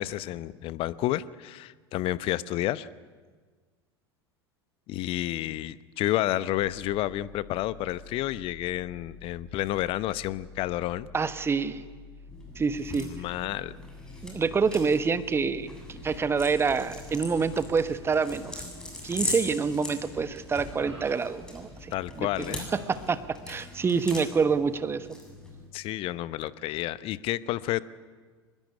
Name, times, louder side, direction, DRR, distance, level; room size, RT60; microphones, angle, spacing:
voice 1, 0.0-2.9 4.9-11.1 12.9-13.8 21.9-22.7 25.7-27.8, left 15 dB, 40° left, 17 dB, 1.0 m, -30 dB
sound 1, 6.5-18.0, left 4 dB, 60° left, 6.6 m, -49 dB
voice 2, 11.1-11.8 12.6-13.1 14.2-18.6 19.0-22.6 22.9-23.2 23.5-25.1, right 5 dB, 15° right, 12 dB, 1.3 m, -27 dB
sound 2, 12.3-25.7, left 1 dB, 5° left, 7.8 m, -40 dB
Human voice, 18.8-19.4 19.9-22.0 22.4-23.5 23.8-24.0, right 3 dB, 75° right, 7.5 m, -51 dB
24.5 x 21.0 x 9.8 m, 1.5 s
figure-of-eight pair, 80°, 14 cm